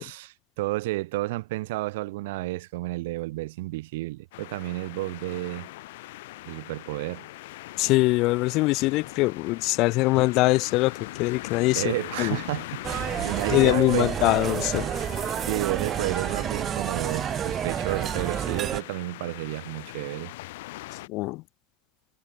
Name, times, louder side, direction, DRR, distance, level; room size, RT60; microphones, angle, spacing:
voice 1, 0.0-5.7 6.5-7.3 11.7-14.3 15.5-20.3, right 19 dB, 75° right, 1.0 m, -31 dB
sound 1, 4.3-21.1, left 18 dB, 75° left, 1.7 m, -41 dB
voice 2, 7.8-10.9 11.2-11.8 12.2-12.4 13.5-14.9 21.1-21.4, left 21 dB, 45° left, 0.5 m, -22 dB
sound 2, 12.8-18.8, right 9 dB, 25° right, 0.8 m, -29 dB
supercardioid pair, 160°, 0 cm